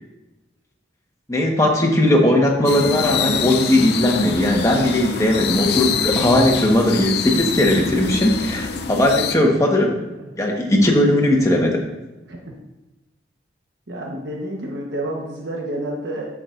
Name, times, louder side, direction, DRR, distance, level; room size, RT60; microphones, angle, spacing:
voice 1, 1.3-9.9 10.4-11.9, left 1 dB, 15° left, -1 dB, 1.4 m, -18 dB
sound 1, 2.6-9.3, left 5 dB, 60° left, 0.6 m, -25 dB
voice 2, 13.9-16.3, right 1 dB, 70° right, -1 dB, 1.3 m, -29 dB
15.0 x 6.0 x 2.6 m, 1.0 s
head